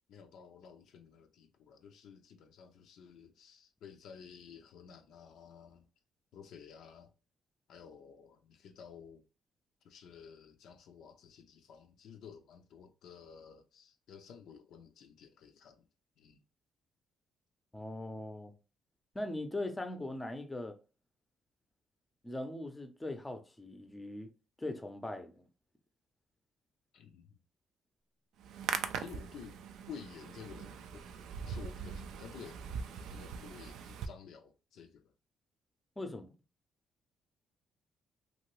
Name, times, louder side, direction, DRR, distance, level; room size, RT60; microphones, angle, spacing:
voice 1, 0.1-5.9 6.3-7.1 7.7-9.3 9.8-15.9 16.2-16.4 26.9-27.4 29.0-29.6 29.9-31.0 31.4-32.7 33.1-35.1, left 7 dB, 80° left, 0.4 m, -52 dB
voice 2, 17.7-18.5 19.1-20.8 22.2-24.3 24.6-25.4 36.0-36.3, left 1 dB, 15° left, 0.6 m, -40 dB
Hands, 28.4-34.1, right 7 dB, 85° right, 0.3 m, -41 dB
2.8 x 2.5 x 3.0 m
cardioid pair, 90°, 0 cm